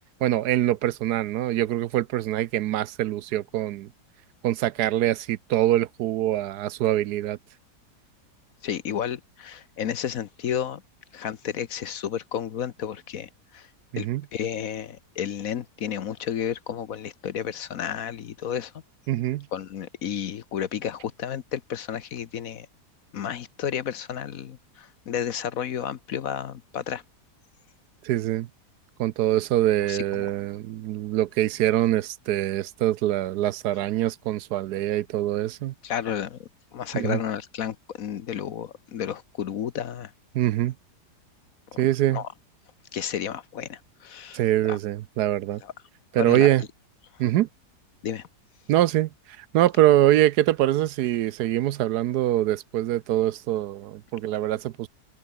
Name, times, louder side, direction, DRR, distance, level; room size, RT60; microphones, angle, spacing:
voice 1, 0.2-3.9 4.4-7.4 13.9-14.2 19.1-19.5 28.0-28.5 29.0-35.7 36.9-37.2 40.3-40.7 41.8-42.2 44.3-45.6 46.1-46.6 47.2-47.5 48.7-49.1 49.4-54.9, right 13 dB, 75° right, 1.1 m, -24 dB
voice 2, 8.6-10.8 11.1-13.7 14.0-14.1 14.3-18.7 19.5-22.7 23.1-27.0 29.9-30.3 35.8-40.1 41.7-42.3 42.9-44.4 44.7-44.8 45.6-45.7 46.1-46.5 48.0-48.3, left 9 dB, 60° left, 1.2 m, -32 dB
omnidirectional pair, 1.8 m